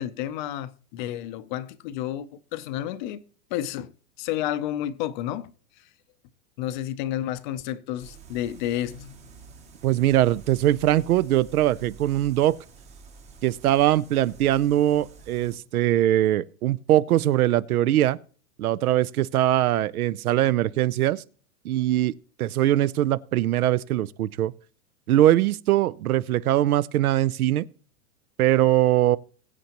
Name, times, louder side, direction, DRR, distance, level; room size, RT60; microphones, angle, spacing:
voice 1, 0.0-3.2 3.5-3.9 4.2-5.5 6.6-9.2, left 12 dB, 35° left, 0.6 m, -31 dB
sound 1, 8.0-15.6, right 4 dB, 15° right, 0.8 m, -48 dB
voice 2, 9.8-12.6 13.4-18.2 18.6-21.2 21.6-22.1 22.4-24.5 25.1-27.7 28.4-29.2, right 13 dB, 85° right, 0.7 m, -21 dB
21.5 x 8.0 x 2.9 m
supercardioid pair, 155°, 43 cm